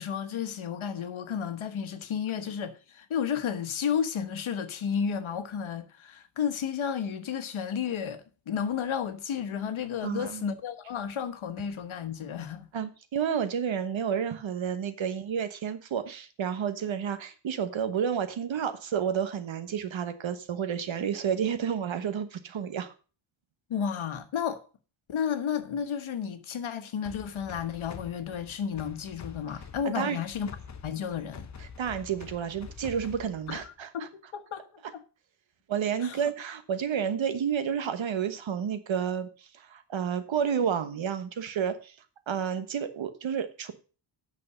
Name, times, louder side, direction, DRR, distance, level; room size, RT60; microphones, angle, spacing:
voice 1, 0.0-12.7 23.7-24.6 25.1-30.5 30.8-31.5 33.5-35.0 36.0-36.3, left 7 dB, 70° left, 1.3 m, -32 dB
voice 2, 10.0-10.4 12.7-22.9 29.8-30.2 31.6-34.1 35.7-39.3 39.5-41.9 42.3-43.7, right 8 dB, 65° right, 1.3 m, -30 dB
sound 1, 27.0-33.8, left 6 dB, 35° left, 0.8 m, -46 dB
8.5 x 6.3 x 6.5 m
wide cardioid pair, 170°, 49 cm